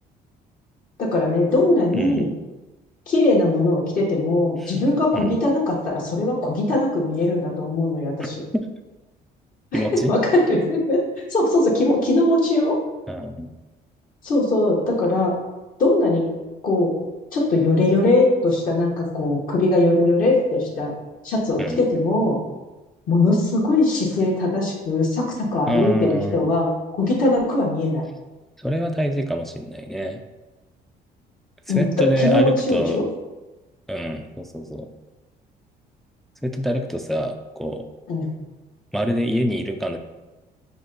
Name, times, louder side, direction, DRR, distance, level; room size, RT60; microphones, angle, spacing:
voice 1, 1.0-2.3 3.1-8.4 9.7-11.0 11.3-12.8 14.2-15.3 15.8-16.3 16.6-16.9 17.3-20.9 21.2-22.4 23.1-26.7 27.0-28.0 31.7-33.0 38.1-38.3, left 2 dB, 55° left, -4 dB, 1.0 m, -20 dB
voice 2, 1.9-2.3 4.6-4.7 5.1-5.4 8.5-8.6 9.7-10.1 13.1-13.5 21.6-21.8 25.7-26.5 28.6-30.2 31.7-33.0 33.9-34.9 36.4-37.9 38.9-40.0, equal, ahead, 4 dB, 0.3 m, -25 dB
5.2 x 2.2 x 3.8 m, 1.1 s
cardioid pair, 110°, 17 cm